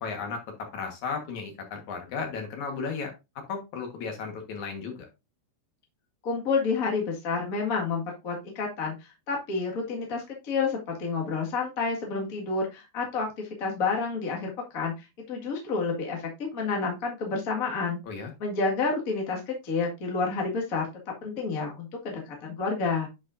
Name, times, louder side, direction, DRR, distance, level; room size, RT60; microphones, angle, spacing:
voice 1, 0.0-3.1 3.5-5.0 18.1-18.3, left 5 dB, 60° left, 3 dB, 2.3 m, -34 dB
voice 2, 6.2-8.9 9.3-14.9 15.3-18.0 18.4-20.9 21.2-23.1, left 4 dB, 80° left, -1 dB, 0.7 m, -29 dB
10.0 x 5.3 x 2.6 m, 0.25 s
omnidirectional pair, 4.9 m